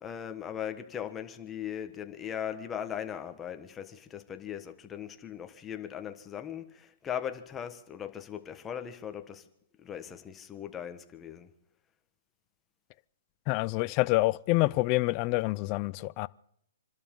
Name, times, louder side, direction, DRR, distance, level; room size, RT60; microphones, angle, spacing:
voice 1, 0.0-9.4 9.8-11.5, left 9 dB, 15° left, 1.3 m, -39 dB
voice 2, 13.5-16.3, left 21 dB, 30° left, 0.5 m, -27 dB
27.5 x 12.5 x 3.8 m
hypercardioid pair, 150°, 0 cm